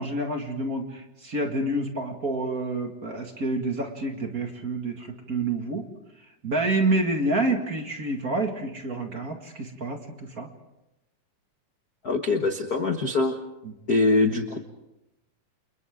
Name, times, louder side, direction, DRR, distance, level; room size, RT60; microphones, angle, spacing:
voice 1, 0.0-5.9 6.4-10.5 13.6-13.7, right 2 dB, 30° right, 3 dB, 1.9 m, -28 dB
voice 2, 12.0-13.4 13.9-14.6, left 3 dB, 75° left, 5 dB, 0.8 m, -23 dB
29.5 x 29.0 x 3.8 m, 0.92 s
omnidirectional pair, 4.0 m